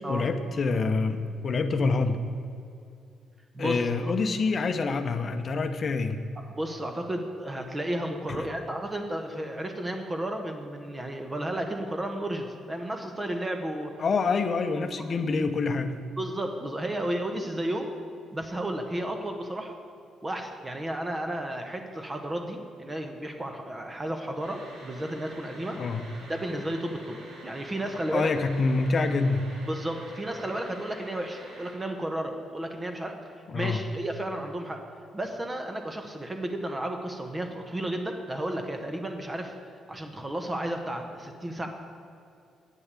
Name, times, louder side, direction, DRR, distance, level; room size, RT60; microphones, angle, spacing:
voice 1, 0.1-2.3 3.6-6.3 8.3-8.4 14.0-16.0 25.7-26.0 28.1-29.5 33.5-33.8, left 4 dB, 45° left, 8 dB, 0.8 m, -26 dB
voice 2, 3.5-4.1 6.5-13.9 16.2-17.9 18.3-19.8 20.2-25.8 26.3-28.3 29.7-34.8 35.1-39.5 39.9-41.7, right 1 dB, 20° right, 4 dB, 1.1 m, -33 dB
sound 1, 24.4-31.7, right 1 dB, 85° right, 2.5 m, -47 dB
8.5 x 6.7 x 8.3 m, 2.5 s
cardioid pair, 90°, 0 cm